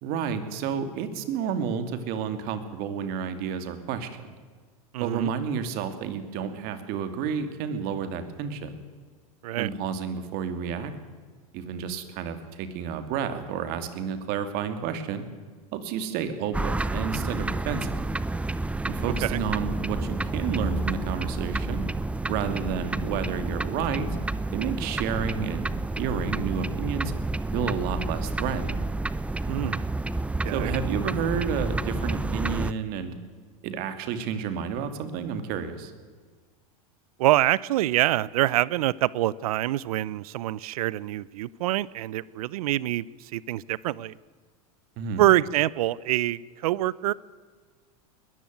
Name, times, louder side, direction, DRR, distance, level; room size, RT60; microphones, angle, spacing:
voice 1, 0.0-4.3 5.0-8.8 9.6-10.9 11.5-15.2 15.7-18.0 18.9-21.8 22.3-24.1 24.5-25.7 26.0-27.1 27.5-28.8 30.5-33.1 33.6-35.9 45.0-45.2, right 7 dB, 55° right, 2.6 m, -30 dB
voice 2, 4.9-5.3 9.4-9.7 19.2-19.4 29.5-29.9 30.4-30.7 37.2-43.1 43.3-44.1 45.2-47.1, right 15 dB, 75° right, 0.6 m, -25 dB
sound 1, 16.5-32.7, right 2 dB, 5° right, 0.6 m, -30 dB
21.0 x 14.0 x 9.4 m
hypercardioid pair, 105°, 19 cm